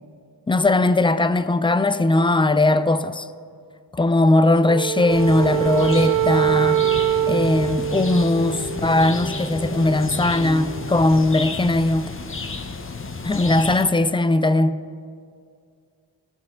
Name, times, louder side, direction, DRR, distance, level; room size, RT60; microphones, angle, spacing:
voice 1, 0.5-3.3 3.9-6.8 7.3-12.1 13.2-14.8, left 2 dB, 15° left, 0.3 m, -19 dB
Wind instrument woodwind instrument, 4.6-9.1, right 12 dB, 50° right, 0.5 m, -23 dB
sound 1, 5.1-13.9, left 4 dB, 30° left, 0.8 m, -33 dB
sound 2, 5.2-10.8, equal, 75° left, 2.2 m, -34 dB
16.0 x 5.7 x 3.8 m
cardioid pair, 60°, 44 cm